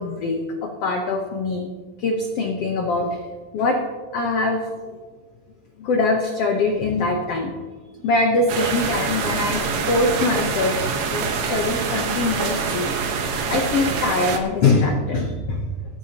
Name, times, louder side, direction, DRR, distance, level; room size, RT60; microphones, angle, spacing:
voice 1, 0.0-1.7 2.0-3.2 3.5-3.8 4.1-5.0 5.8-7.5 8.0-15.6, left 3 dB, 75° left, 2 dB, 1.4 m, -23 dB
sound 1, 8.5-14.4, right 5 dB, 60° right, 2.1 m, -25 dB
18.5 x 12.5 x 2.9 m, 1.4 s
omnidirectional pair, 4.2 m